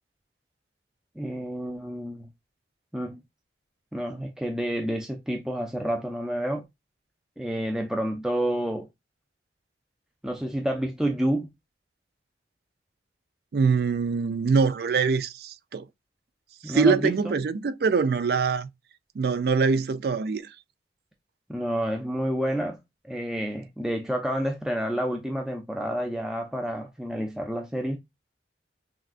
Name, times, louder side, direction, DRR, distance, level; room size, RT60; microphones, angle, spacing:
voice 1, 1.2-2.3 2.9-3.2 3.9-6.6 7.4-8.9 10.2-11.5 16.6-17.4 21.5-22.8 23.1-28.0, right 1 dB, 5° right, 0.5 m, -29 dB
voice 2, 13.5-15.9 16.6-18.7 19.2-20.5, right 5 dB, 60° right, 0.4 m, -24 dB
6.1 x 2.3 x 2.4 m
head